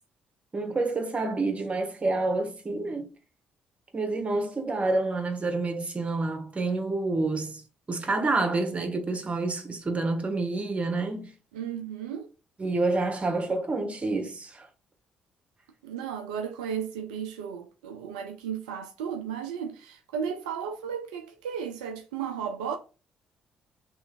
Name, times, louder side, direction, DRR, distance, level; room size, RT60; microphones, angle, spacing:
voice 1, 0.5-3.1 3.9-7.6 7.9-11.3 12.6-14.7, right 3 dB, 35° right, 1.2 m, -28 dB
voice 2, 11.5-12.3 15.8-22.8, right 7 dB, 85° right, 0.3 m, -34 dB
3.1 x 3.0 x 3.9 m
hypercardioid pair, 45°, 4 cm